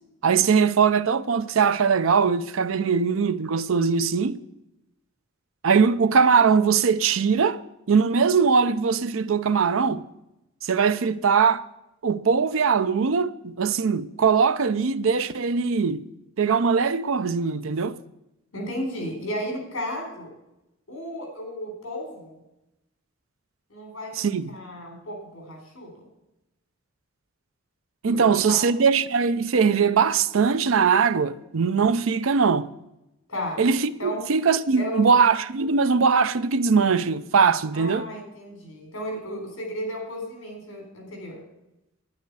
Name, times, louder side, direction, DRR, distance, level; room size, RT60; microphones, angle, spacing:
voice 1, 0.2-4.4 5.6-7.6 7.9-10.0 10.6-11.6 12.0-16.0 16.4-18.0 24.2-24.5 28.0-32.7 33.6-38.1, right 5 dB, 75° right, 0.5 m, -21 dB
voice 2, 18.5-20.3 20.9-22.4 23.7-24.2 24.5-26.1 28.1-28.2 28.5-28.6 33.3-33.6 34.0-34.2 34.8-35.1 37.7-41.4, equal, 70° left, 4.1 m, -34 dB
11.5 x 10.5 x 4.8 m
head